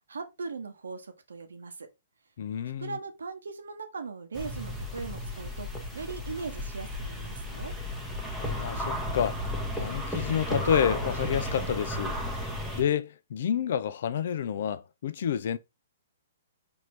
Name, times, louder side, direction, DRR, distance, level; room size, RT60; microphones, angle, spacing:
voice 1, 0.1-1.9 2.8-7.7, right 4 dB, 80° right, 0.8 m, -39 dB
voice 2, 2.4-3.0 8.4-15.6, left 8 dB, 60° left, 0.4 m, -29 dB
sound 1, 4.3-12.8, left 1 dB, ahead, 0.9 m, -34 dB
4.3 x 2.6 x 3.1 m
hypercardioid pair, 125°, 0 cm